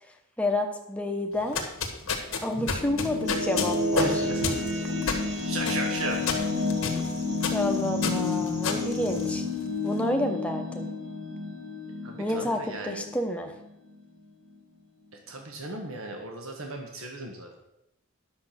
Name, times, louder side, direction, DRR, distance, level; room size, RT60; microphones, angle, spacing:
voice 1, 0.4-1.6 2.4-4.1 7.2-9.5 9.8-10.9 12.2-13.5, left 1 dB, 5° left, 3 dB, 0.9 m, -29 dB
sound 1, 1.4-9.7, left 4 dB, 75° left, 1.4 m, -32 dB
sound 2, 2.3-13.6, left 3 dB, 55° right, 1.7 m, -30 dB
sound 3, 3.2-9.4, right 1 dB, 15° right, 1.2 m, -45 dB
voice 2, 4.0-5.2 5.5-6.3 12.0-13.1 15.3-17.5, right 2 dB, 75° right, 2 dB, 1.3 m, -36 dB
10.0 x 6.7 x 5.8 m, 0.86 s
head